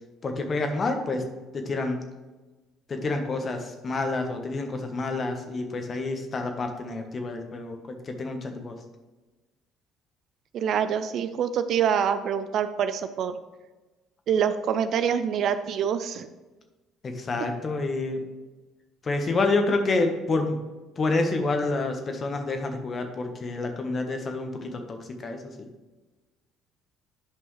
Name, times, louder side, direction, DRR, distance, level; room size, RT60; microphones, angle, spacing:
voice 1, 0.2-1.2 1.5-2.0 2.9-8.8 17.0-18.2 19.0-20.6 21.0-25.7, left 3 dB, 40° left, 5 dB, 1.3 m, -28 dB
voice 2, 10.5-13.4 14.3-16.3, right 8 dB, 60° right, 11 dB, 0.5 m, -25 dB
10.0 x 5.3 x 3.3 m, 1.2 s
hypercardioid pair, 55°, 0 cm